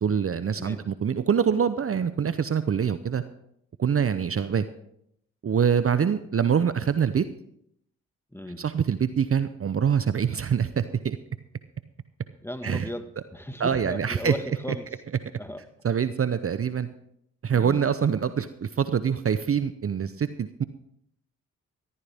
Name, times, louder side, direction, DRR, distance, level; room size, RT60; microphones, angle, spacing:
voice 1, 0.0-3.2 3.8-4.6 5.4-7.2 8.6-11.2 12.6-12.9 13.6-14.3 15.8-16.9 17.4-20.6, right 7 dB, 40° right, 12 dB, 0.7 m, -25 dB
voice 2, 8.3-8.7 12.4-14.9 15.4-15.6 17.5-17.8, left 1 dB, 5° left, 8 dB, 1.6 m, -36 dB
14.0 x 13.5 x 3.5 m, 0.74 s
supercardioid pair, 45°, 34 cm